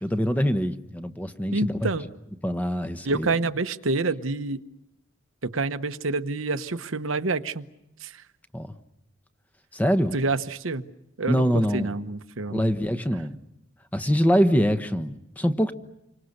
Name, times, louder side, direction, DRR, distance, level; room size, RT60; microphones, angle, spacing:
voice 1, 0.0-1.9 2.4-3.3 8.5-8.7 9.7-10.1 11.3-11.9 12.5-13.4 13.9-15.7, equal, 10° left, 9 dB, 1.1 m, -24 dB
voice 2, 1.5-2.0 3.0-4.6 5.4-7.7 8.0-8.2 10.1-10.9 11.2-12.7, right 3 dB, 80° right, 10 dB, 1.1 m, -28 dB
29.0 x 25.5 x 6.6 m, 0.86 s
head